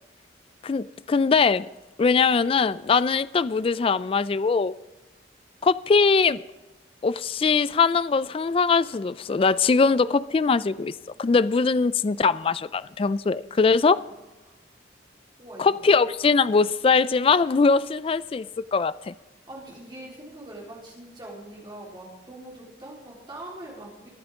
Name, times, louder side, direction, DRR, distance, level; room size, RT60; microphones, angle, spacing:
voice 1, 0.6-1.7 2.0-4.7 5.6-6.4 7.0-10.9 11.2-14.0 15.6-18.5 18.7-19.1, left 4 dB, 30° left, 0.3 m, -21 dB
voice 2, 15.4-16.0 19.5-24.1, right 1 dB, 25° right, 3.7 m, -42 dB
22.5 x 8.8 x 3.6 m
head